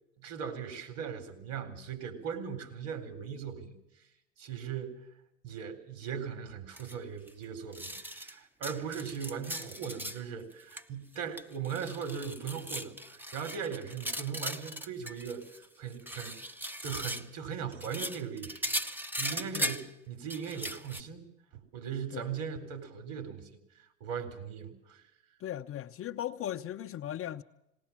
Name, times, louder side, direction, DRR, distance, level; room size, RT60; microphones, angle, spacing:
voice 1, 0.2-3.7 4.4-5.0 5.4-16.4 16.8-18.6 19.2-21.3 21.7-23.5 24.0-25.0, right 7 dB, 55° right, 4.3 m, -39 dB
sound 1, 6.7-6.9 7.3-7.4 7.7-8.3 8.6-10.2 10.5-10.8 11.1-15.7 15.9-17.3 17.7-19.9 20.3-21.0, equal, 5° right, 0.9 m, -38 dB
voice 2, 25.4-27.4, left 11 dB, 35° left, 0.8 m, -37 dB
19.0 x 19.0 x 7.4 m
hypercardioid pair, 80°, 40 cm